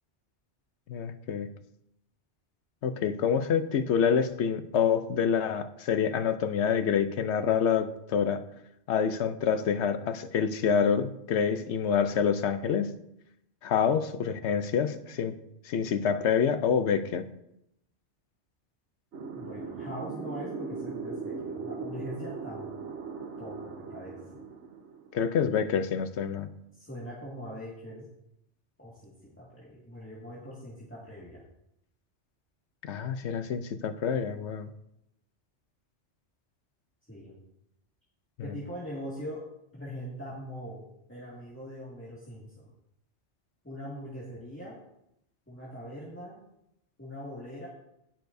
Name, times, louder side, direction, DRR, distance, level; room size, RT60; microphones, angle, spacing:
voice 1, 0.9-1.5 2.8-8.4 8.9-12.9 13.6-15.3 15.6-17.3 25.1-26.5 32.8-34.7 38.4-38.6, left 7 dB, 80° left, 10 dB, 1.0 m, -27 dB
sound 1, 19.1-25.3, right 4 dB, 85° right, 1.4 m, -39 dB
voice 2, 19.3-22.7 23.4-24.5 26.7-28.1 28.8-31.4 37.1-37.4 38.4-39.5 39.7-42.7 43.6-44.8 45.5-46.4 47.0-47.7, equal, 10° left, -6 dB, 2.1 m, -42 dB
18.0 x 6.7 x 2.7 m, 0.82 s
omnidirectional pair, 1.2 m